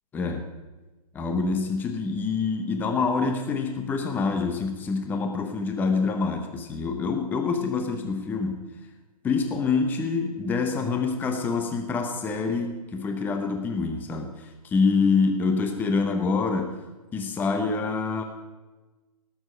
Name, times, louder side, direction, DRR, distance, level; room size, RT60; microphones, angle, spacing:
voice 1, 0.1-0.4 1.1-8.7 9.2-14.3 14.6-16.8 17.1-18.2, left 4 dB, 10° left, 5 dB, 0.8 m, -26 dB
18.5 x 7.1 x 5.5 m, 1.2 s
hypercardioid pair, 145°, 20 cm